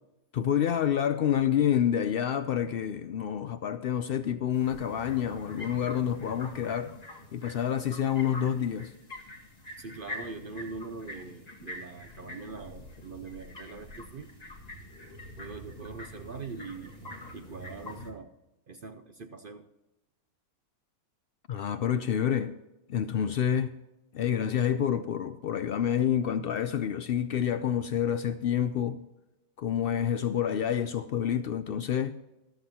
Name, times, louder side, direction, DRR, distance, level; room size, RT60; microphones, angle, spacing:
voice 1, 0.3-6.9 7.3-8.9 21.5-22.5 22.9-23.7 24.1-29.0 29.6-32.1, left 9 dB, 80° left, 0.5 m, -28 dB
sound 1, 4.5-18.1, left 1 dB, 25° left, 1.9 m, -45 dB
voice 2, 9.8-14.3 15.4-16.9 17.3-18.3 18.7-19.6, right 4 dB, 55° right, 0.6 m, -42 dB
14.0 x 13.0 x 2.9 m
omnidirectional pair, 1.6 m